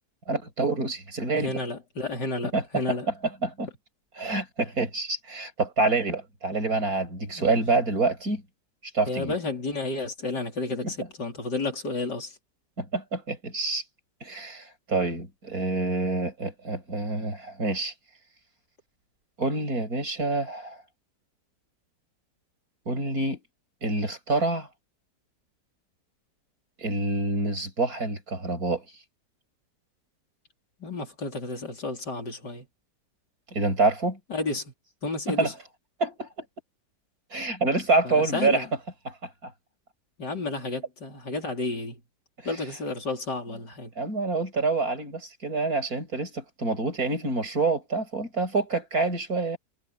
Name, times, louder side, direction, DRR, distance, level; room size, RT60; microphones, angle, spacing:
voice 1, 0.3-1.6 2.5-2.6 3.4-3.7 4.2-8.4 8.9-9.4 10.8-10.9 12.8-13.8 14.2-17.9 19.4-20.8 22.9-23.4 23.8-24.7 26.8-28.8 33.5-34.2 35.3-35.5 36.0-36.4 37.3-38.6 39.0-39.5 42.4-42.5 44.0-49.6, right 3 dB, 60° right, 6.8 m, -27 dB
voice 2, 1.4-3.1 7.4-7.6 9.1-12.4 30.8-32.7 34.3-34.7 35.0-35.5 38.0-38.7 40.2-42.0 42.4-43.9, left 3 dB, 80° left, 4.5 m, -31 dB
omnidirectional pair, 1.8 m